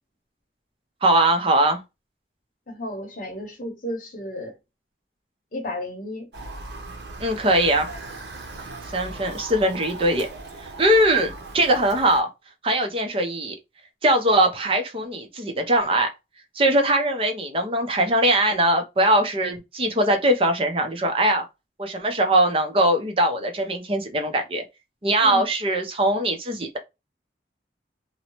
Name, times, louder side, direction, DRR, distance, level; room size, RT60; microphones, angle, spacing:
voice 1, 1.0-1.8 7.2-7.9 8.9-10.3 10.6-12.3 12.6-13.6 14.0-16.1 16.6-21.4 21.8-24.6 25.0-26.8, right 1 dB, 30° right, 0.6 m, -21 dB
voice 2, 2.7-4.5 5.5-6.3 25.2-25.4, left 1 dB, 50° left, 0.8 m, -33 dB
Motor vehicle (road) / Siren, 6.3-12.2, right 2 dB, 70° right, 0.7 m, -38 dB
2.6 x 2.1 x 2.9 m
head